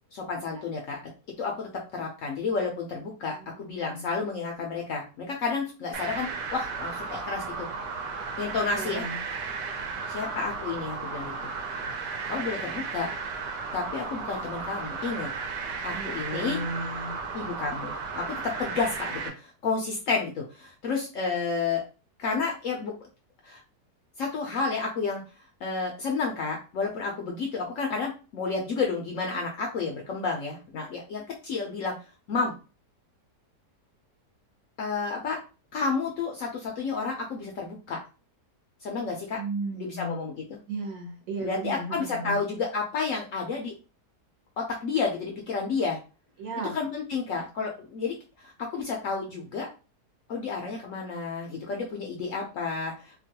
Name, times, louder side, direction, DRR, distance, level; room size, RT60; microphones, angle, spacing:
voice 1, 0.1-1.0 1.4-7.7 8.4-9.0 10.1-11.3 12.3-13.1 13.7-15.3 15.8-16.6 17.3-21.8 22.2-22.9 23.4-23.6 24.2-25.2 25.6-31.9 32.3-32.5 34.8-35.4 35.7-38.0 38.8-39.4 39.7-40.6 41.4-43.7 44.6-46.0 46.7-49.7 50.3-53.2, left 4 dB, 65° left, 0 dB, 0.8 m, -31 dB
voice 2, 3.3-4.0 8.7-9.2 15.9-17.1 39.4-40.2 40.7-42.4 46.4-46.7, right 2 dB, 60° right, 2 dB, 1.1 m, -35 dB
sound 1, 5.9-19.3, right 4 dB, 85° right, 1.2 m, -34 dB
2.9 x 2.2 x 2.8 m, 0.33 s
omnidirectional pair, 1.8 m